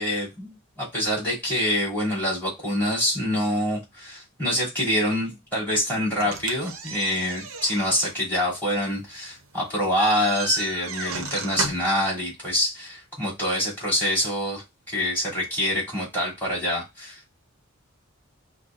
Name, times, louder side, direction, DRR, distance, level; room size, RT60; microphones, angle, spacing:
voice 1, 0.0-17.3, equal, 10° left, -6 dB, 2.7 m, -26 dB
sound 1, 6.2-12.0, right 5 dB, 80° right, 0.7 m, -35 dB
6.3 x 2.3 x 2.5 m, 0.22 s
head